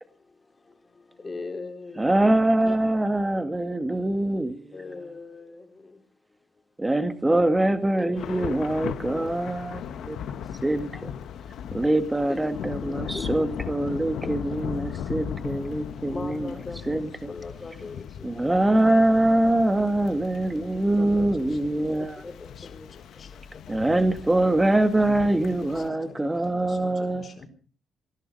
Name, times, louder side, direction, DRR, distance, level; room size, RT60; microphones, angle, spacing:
voice 1, 0.0-2.3 2.7-2.8 4.7-6.6 8.0-8.6 9.2-9.4 10.9-11.0 12.3-13.5 15.4-18.4 20.7-21.5 22.0-23.3 25.4-26.1, left 3 dB, 30° left, 5 dB, 3.6 m, -41 dB
voice 2, 2.0-4.9 6.8-10.2 10.6-10.9 11.7-17.3 18.2-22.2 23.7-27.4, right 1 dB, 15° right, 9 dB, 1.9 m, -24 dB
Thunder / Rain, 8.2-25.9, left 8 dB, 75° left, 1.1 m, -38 dB
voice 3, 21.5-21.8 22.5-22.8 23.1-24.1 24.9-27.5, left 4 dB, 45° left, 4 dB, 4.4 m, -47 dB
18.5 x 12.5 x 5.4 m, 0.40 s
cardioid pair, 90°, 0 cm